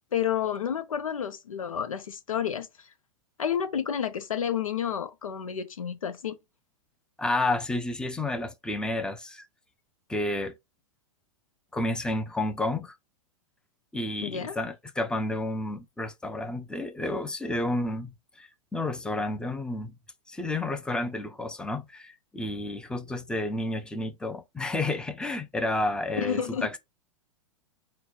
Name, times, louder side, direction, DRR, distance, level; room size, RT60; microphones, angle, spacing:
voice 1, 0.1-2.7 3.4-6.4 14.2-14.6 26.2-26.8, left 8 dB, 80° left, 0.7 m, -30 dB
voice 2, 7.2-9.5 10.1-10.5 11.7-12.9 13.9-20.0 20.3-26.8, left 2 dB, 5° left, 0.6 m, -31 dB
4.0 x 2.3 x 3.7 m
hypercardioid pair, 105°, 17 cm